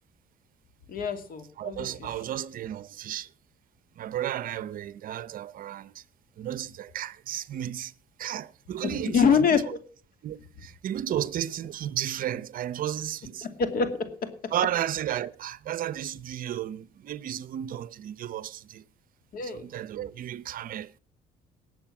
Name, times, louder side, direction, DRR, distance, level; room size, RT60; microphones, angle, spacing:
voice 1, 0.9-1.9 8.8-9.8 13.4-13.9 19.3-19.6, left 6 dB, 60° left, 2.6 m, -25 dB
voice 2, 1.6-3.3 4.0-6.0 6.4-7.9 8.2-9.6 10.2-13.5 14.5-18.8 19.4-21.0, right 11 dB, 55° right, 0.7 m, -33 dB
19.0 x 7.8 x 5.9 m
cardioid pair, 110°, 17 cm